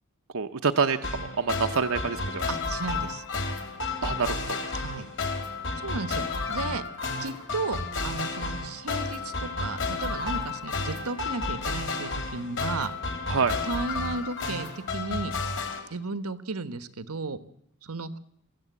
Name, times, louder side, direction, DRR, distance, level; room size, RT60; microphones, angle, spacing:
voice 1, 0.3-2.4 4.0-4.6 13.3-13.6, right 5 dB, 65° right, 7 dB, 0.9 m, -27 dB
sound 1, 1.0-15.8, left 3 dB, 60° left, 3.6 m, -32 dB
voice 2, 2.5-3.2 4.7-5.1 5.8-6.8 7.2-12.9 13.6-15.3 15.9-17.4 17.8-18.2, right 3 dB, 85° right, 13 dB, 1.3 m, -34 dB
23.5 x 15.0 x 8.3 m, 0.75 s
head